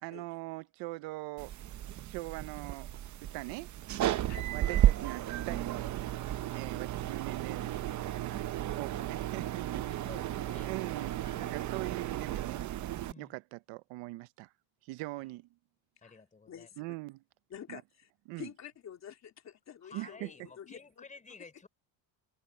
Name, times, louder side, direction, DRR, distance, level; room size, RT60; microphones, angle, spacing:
voice 1, 0.0-1.5 2.0-2.9 3.2-3.7 4.5-5.9 6.5-8.4 8.7-10.1 10.6-12.6 13.2-14.5 14.8-15.5 16.8-17.2 17.7-17.8 18.3-18.5 19.9-20.5, right 21 dB, 90° right, 0.9 m, -42 dB
sound 1, 1.4-13.1, right 12 dB, 40° right, 0.8 m, -33 dB
voice 2, 9.9-10.7 11.2-11.6 13.1-13.3 16.0-16.7 19.8-21.7, left 4 dB, 15° left, 4.0 m, -53 dB
voice 3, 16.0-16.8 17.5-18.1 18.3-21.0, left 9 dB, 40° left, 3.3 m, -48 dB
cardioid pair, 145°, 43 cm